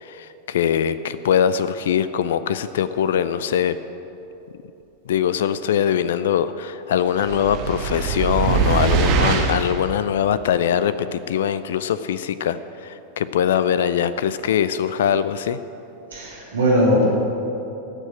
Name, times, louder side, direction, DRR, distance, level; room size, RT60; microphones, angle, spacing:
voice 1, 0.0-3.8 5.1-15.6, left 9 dB, 60° left, 14 dB, 0.4 m, -22 dB
sound 1, 7.2-9.8, right 5 dB, 40° right, 1.5 m, -22 dB
voice 2, 16.1-17.0, equal, 75° right, -12 dB, 3.8 m, -19 dB
14.5 x 6.7 x 8.8 m, 3.0 s
figure-of-eight pair, 90°, 0 cm